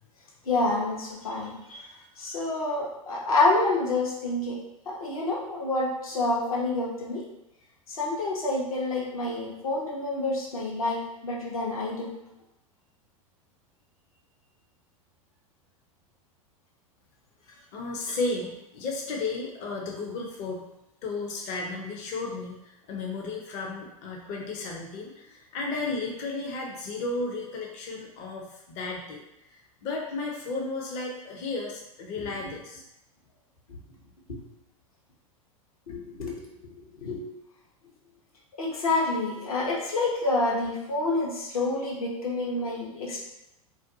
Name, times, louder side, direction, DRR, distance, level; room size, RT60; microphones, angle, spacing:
voice 1, 0.5-1.8 2.2-4.6 4.9-7.2 7.9-12.1 33.7-33.8 34.3-34.4 35.9-36.5 36.9-37.2 38.6-43.2, left 2 dB, 80° left, -4 dB, 0.8 m, -28 dB
voice 2, 17.7-20.6 21.0-29.2 29.5-32.8, left 3 dB, 40° left, -1 dB, 0.5 m, -34 dB
2.5 x 2.2 x 2.5 m, 0.87 s
hypercardioid pair, 95°, 18 cm